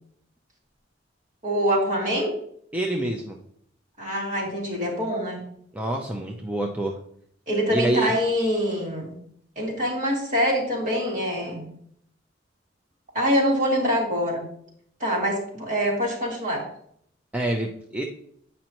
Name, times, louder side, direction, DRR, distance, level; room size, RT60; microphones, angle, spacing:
voice 1, 1.4-2.3 4.0-5.4 7.5-9.1 9.6-11.6 13.1-14.5 15.0-16.6, equal, 45° right, -3 dB, 2.6 m, -24 dB
voice 2, 2.7-3.4 5.7-7.0 7.7-8.2 17.3-18.0, right 1 dB, 10° right, 1 dB, 0.6 m, -26 dB
8.9 x 5.3 x 3.0 m, 0.67 s
head